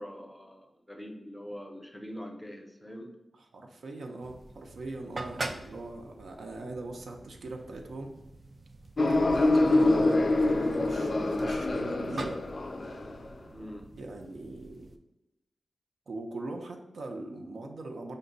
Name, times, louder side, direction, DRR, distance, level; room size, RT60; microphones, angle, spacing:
voice 1, 0.0-3.1 13.5-13.9, equal, 5° left, 3 dB, 0.6 m, -43 dB
voice 2, 3.5-8.1 9.0-12.4 14.0-14.9 16.1-18.2, right 2 dB, 85° right, 3 dB, 0.6 m, -41 dB
sound 1, 4.2-15.0, right 2 dB, 45° right, 0.3 m, -45 dB
sound 2, 9.0-13.3, left 2 dB, 50° left, 0.3 m, -25 dB
5.1 x 2.2 x 3.9 m, 0.92 s
wide cardioid pair, 110°, 0 cm